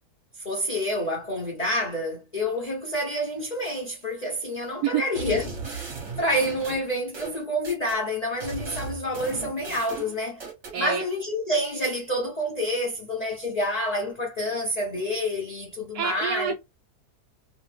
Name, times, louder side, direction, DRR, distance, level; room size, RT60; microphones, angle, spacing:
voice 1, 0.3-10.4 10.8-16.5, left 1 dB, 40° left, 0.6 m, -28 dB
sound 1, 5.2-8.0 8.4-10.8, right 4 dB, 50° right, 1.5 m, -37 dB
voice 2, 15.9-16.5, right 9 dB, 80° right, 1.2 m, -27 dB
3.1 x 2.0 x 3.2 m
omnidirectional pair, 1.8 m